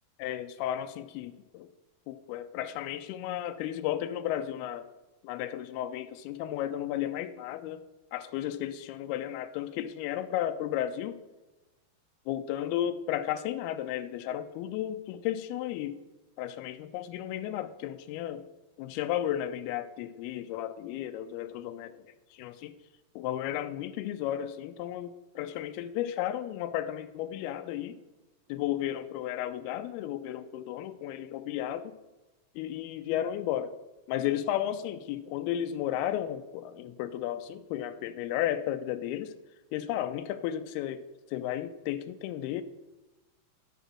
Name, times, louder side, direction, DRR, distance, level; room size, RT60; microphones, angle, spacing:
voice 1, 0.2-1.7 2.1-4.9 5.2-7.8 8.1-11.2 12.3-16.0 16.4-18.4 18.8-21.9 22.4-22.7 23.2-28.0 28.5-31.9 32.6-33.7 34.1-39.3 39.7-41.0 41.3-42.6, left 11 dB, 85° left, 10 dB, 2.5 m, -33 dB
10.0 x 5.2 x 6.3 m, 1.1 s
omnidirectional pair, 4.4 m